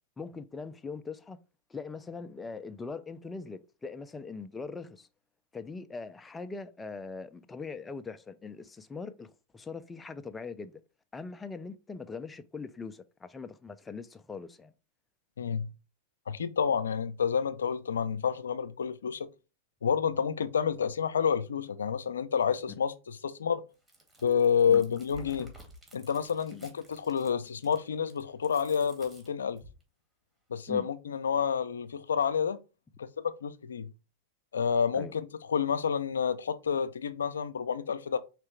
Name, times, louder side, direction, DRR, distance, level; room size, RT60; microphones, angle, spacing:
voice 1, 0.2-1.4 1.7-5.1 5.5-10.7 11.1-14.7 24.7-24.8 26.5-26.7 30.7-30.9 34.9-35.1, left 4 dB, 15° left, 0.5 m, -41 dB
voice 2, 15.4-15.7 16.3-19.3 19.8-23.6 24.2-25.5 25.9-29.6 30.5-32.6 33.0-33.1 33.4-33.9 34.5-35.2 35.5-38.2, left 7 dB, 90° left, 0.5 m, -29 dB
Chewing mastication, 23.7-29.8, equal, 15° right, 2.0 m, -53 dB
4.6 x 3.3 x 3.2 m
hypercardioid pair, 105°, 0 cm